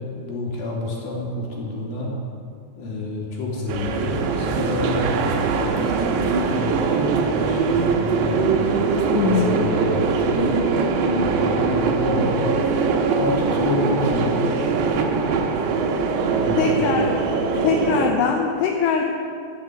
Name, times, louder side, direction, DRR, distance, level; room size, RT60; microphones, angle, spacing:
voice 1, 0.1-2.1 2.8-8.6 9.2-10.4 11.1-12.6 13.1-14.4 16.3-16.7, left 2 dB, 60° left, -4 dB, 4.4 m, -28 dB
sound 1, 3.7-18.1, right 4 dB, 85° right, 3.2 m, -22 dB
voice 2, 9.1-9.5 16.6-17.1 17.6-19.0, left 6 dB, 80° left, 1 dB, 2.9 m, -21 dB
13.0 x 8.5 x 8.3 m, 2.3 s
omnidirectional pair, 4.9 m